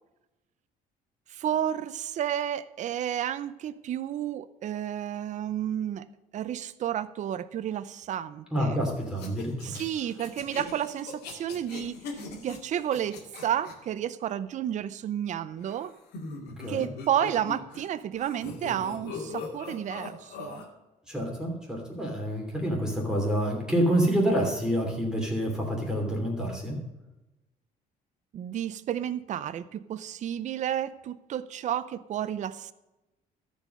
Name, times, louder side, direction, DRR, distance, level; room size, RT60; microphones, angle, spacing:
voice 1, 1.3-6.1 6.3-8.9 9.6-15.9 16.7-20.6 28.3-32.7, right 10 dB, 45° right, 14 dB, 0.5 m, -31 dB
voice 2, 8.5-9.5 16.6-16.9 21.1-26.8, equal, 5° right, -1 dB, 2.9 m, -27 dB
sound 1, 9.1-13.7 15.6-17.9 18.1-20.6, left 3 dB, 80° left, 2.2 m, -40 dB
13.5 x 5.3 x 6.5 m, 1.0 s
cardioid pair, 110°, 17 cm